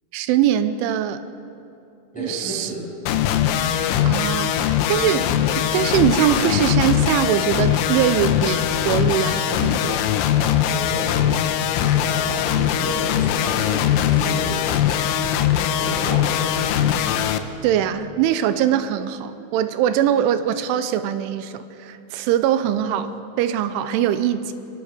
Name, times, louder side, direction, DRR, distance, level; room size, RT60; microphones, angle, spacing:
voice 1, 0.1-1.2 2.2-2.7 4.0-10.1 17.6-24.5, right 10 dB, 85° right, 11 dB, 3.1 m, -22 dB
voice 2, 2.1-2.9 10.4-11.2 11.9-14.6 15.5-16.8, equal, ahead, -6 dB, 6.5 m, -32 dB
sound 1, 3.1-17.4, left 10 dB, 80° left, 3.1 m, -21 dB
24.0 x 22.5 x 5.1 m, 2.7 s
omnidirectional pair, 5.7 m